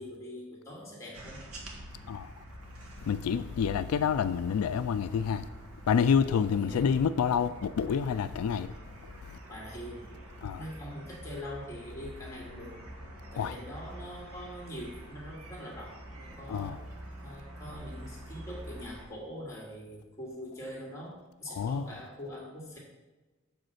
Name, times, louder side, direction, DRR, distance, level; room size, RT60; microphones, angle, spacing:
voice 1, 0.0-1.4 6.5-6.9 9.4-12.8 13.3-16.8 17.2-22.8, equal, 15° left, 2.4 m, -43 dB
sound 1, 1.1-19.1, right 1 dB, 85° right, 1.7 m, -47 dB
voice 2, 3.0-5.5 5.9-8.7 9.2-9.4 10.4-10.6 13.4-13.5 16.5-16.8 21.5-21.9, left 7 dB, 90° left, 0.3 m, -28 dB
7.0 x 5.3 x 5.8 m
head